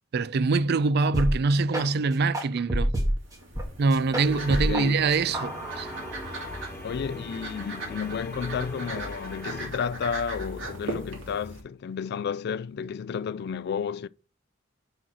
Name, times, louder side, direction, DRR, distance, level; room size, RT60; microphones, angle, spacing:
voice 1, 0.1-2.9 3.8-5.9, right 4 dB, 55° right, 0.4 m, -24 dB
sound 1, 1.1-1.3 1.7-1.9 2.3-3.6 3.9-4.8 5.1-6.6, right 1 dB, 15° right, 1.5 m, -28 dB
sound 2, 3.2-11.6, right 2 dB, 70° right, 2.6 m, -39 dB
sound 3, 4.2-9.7, left 1 dB, 15° left, 2.2 m, -41 dB
voice 2, 4.5-5.0 6.8-14.1, left 7 dB, 55° left, 0.3 m, -32 dB
6.2 x 4.5 x 6.1 m
head